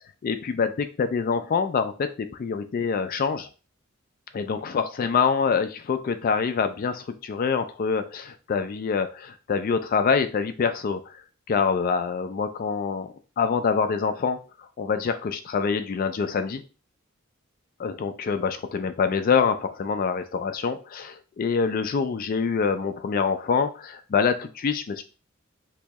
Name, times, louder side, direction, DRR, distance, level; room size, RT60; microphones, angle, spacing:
voice 1, 0.2-3.5 4.3-11.2 11.5-14.4 14.8-16.6 17.8-25.0, left 5 dB, 45° left, 9 dB, 0.3 m, -25 dB
3.0 x 2.7 x 3.4 m, 0.34 s
head